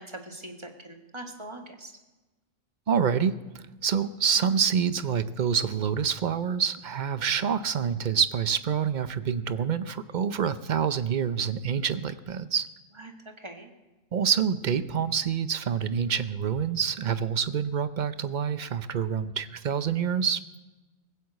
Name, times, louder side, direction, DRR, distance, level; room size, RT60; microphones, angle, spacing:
voice 1, 0.0-1.9 13.0-13.7, right 1 dB, 20° right, 4 dB, 1.6 m, -42 dB
voice 2, 2.9-12.7 14.1-20.6, right 7 dB, 50° right, 13 dB, 0.6 m, -27 dB
19.5 x 7.8 x 8.3 m, 1.1 s
omnidirectional pair, 1.4 m